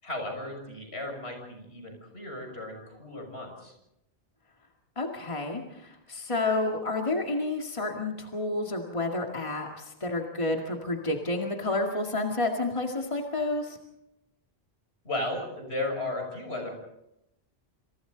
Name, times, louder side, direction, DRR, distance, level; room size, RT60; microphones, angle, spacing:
voice 1, 0.0-3.7 15.0-16.7, left 1 dB, 75° left, 3 dB, 6.4 m, -35 dB
voice 2, 5.0-13.8, left 2 dB, 30° left, 1 dB, 2.2 m, -30 dB
27.5 x 27.5 x 4.0 m, 0.85 s
omnidirectional pair, 1.1 m